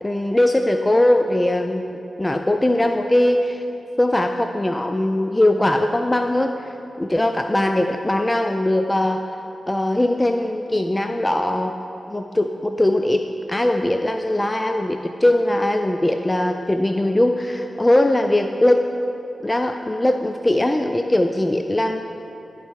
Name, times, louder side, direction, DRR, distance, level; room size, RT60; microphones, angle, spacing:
voice 1, 0.0-3.6 4.0-9.3 9.7-11.7 12.1-13.2 13.5-18.8 19.4-22.0, left 1 dB, 20° left, 6 dB, 0.4 m, -20 dB
11.5 x 4.6 x 4.5 m, 2.9 s
cardioid pair, 45°, 0 cm